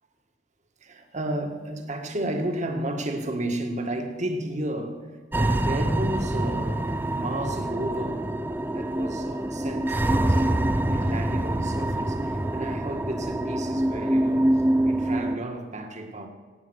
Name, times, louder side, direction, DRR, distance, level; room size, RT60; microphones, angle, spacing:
voice 1, 0.8-8.3 8.7-16.3, right 1 dB, 40° right, 1.7 m, -33 dB
sound 1, 5.3-15.4, right 1 dB, 10° right, 0.4 m, -25 dB
17.5 x 8.9 x 6.3 m
head